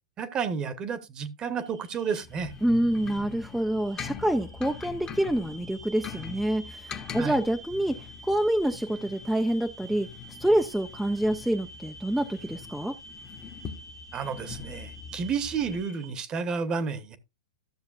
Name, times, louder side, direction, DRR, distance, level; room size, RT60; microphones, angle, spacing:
voice 1, 0.2-2.5 7.2-7.4 14.1-17.2, right 6 dB, 25° right, 1.1 m, -31 dB
sound 1, 1.6-16.1, right 1 dB, 90° right, 5.7 m, -49 dB
sound 2, 2.2-15.8, left 7 dB, 20° left, 1.1 m, -43 dB
voice 2, 2.6-10.1 10.4-13.0, right 1 dB, ahead, 0.6 m, -27 dB
13.5 x 6.8 x 2.4 m
hypercardioid pair, 110°, 3 cm